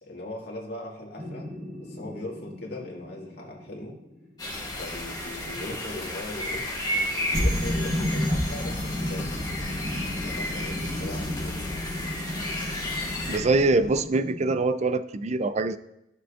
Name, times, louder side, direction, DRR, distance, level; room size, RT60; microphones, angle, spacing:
voice 1, 0.0-1.5 1.8-4.0 4.8-6.7 7.2-9.3 10.2-11.6, left 1 dB, 65° left, -2 dB, 1.9 m, -39 dB
sound 1, 1.2-4.2 7.3-14.6, left 1 dB, 55° right, 3.1 m, -32 dB
sound 2, 4.4-13.4, left 1 dB, 20° left, 1.9 m, -33 dB
Action Music, 8.6-13.9, left 2 dB, 45° left, 0.6 m, -41 dB
voice 2, 13.3-15.8, right 3 dB, 40° right, 13 dB, 0.4 m, -24 dB
14.0 x 6.7 x 2.5 m, 0.85 s
head